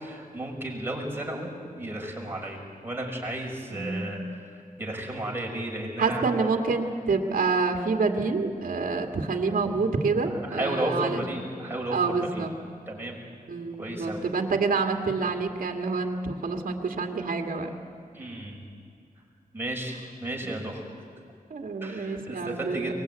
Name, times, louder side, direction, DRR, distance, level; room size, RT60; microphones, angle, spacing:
voice 1, 0.0-1.5 1.8-4.4 4.8-6.2 10.5-12.4 12.9-13.2 13.8-14.3 18.1-18.6 19.5-20.9 21.8-22.9, right 1 dB, 15° right, -1 dB, 6.2 m, -33 dB
voice 2, 3.7-4.2 6.0-11.5 11.9-12.5 13.5-17.7 21.5-22.9, right 4 dB, 65° right, 3 dB, 2.2 m, -27 dB
23.0 x 20.5 x 9.5 m, 2.4 s
wide cardioid pair, 90°, 15 cm